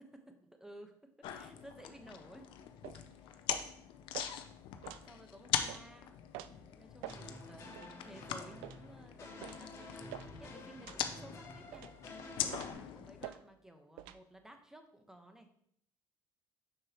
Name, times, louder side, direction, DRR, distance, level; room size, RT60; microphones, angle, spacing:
voice 1, 0.1-0.9 1.3-2.7 3.0-3.4 5.0-6.2 6.4-11.9 12.4-15.5, right 1 dB, 5° right, 5 dB, 1.1 m, -56 dB
sound 1, 1.2-13.3, left 9 dB, 70° left, 0.6 m, -42 dB
sound 2, 2.8-3.0 3.5-3.7 4.1-4.3 4.8-5.0 5.7-5.8 6.3-6.5 7.0-7.2 7.7-7.9 8.6-8.8 9.4-9.6 10.1-10.3 10.8-11.0 11.7-12.0 12.5-12.8 13.2-13.4 14.0-14.2, right 13 dB, 85° right, 0.4 m, -47 dB
sound 3, 7.1-12.7, left 2 dB, 40° left, 2.5 m, -50 dB
6.2 x 6.2 x 3.0 m, 0.68 s
supercardioid pair, 85°, 9 cm